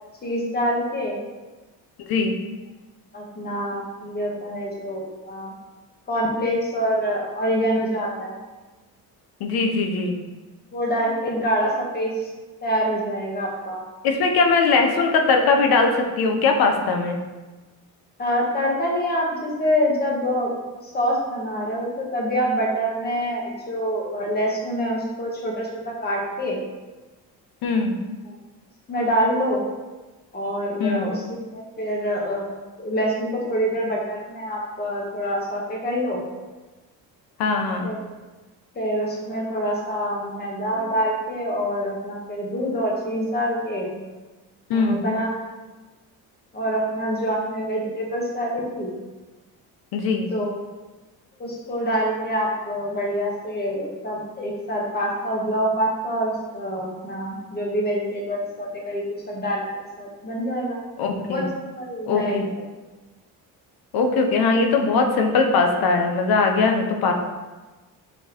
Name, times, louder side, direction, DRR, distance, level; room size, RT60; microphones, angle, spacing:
voice 1, 0.2-1.2 3.1-5.6 6.1-8.4 10.7-12.3 12.6-13.8 18.2-20.5 20.8-26.6 28.3-28.4 28.9-29.6 30.3-32.5 32.8-36.2 37.8-38.0 38.7-43.9 44.7-45.3 46.5-48.9 50.3-50.5 51.4-60.8 61.3-62.4, equal, 25° left, -1 dB, 1.0 m, -26 dB
voice 2, 9.4-10.2 14.0-17.2 27.6-28.0 30.8-31.1 37.4-37.9 44.7-45.0 49.9-50.3 61.0-61.4 62.1-62.4 63.9-67.1, left 4 dB, 70° left, 4 dB, 0.7 m, -20 dB
5.1 x 3.5 x 2.8 m, 1.2 s
cardioid pair, 135°, 38 cm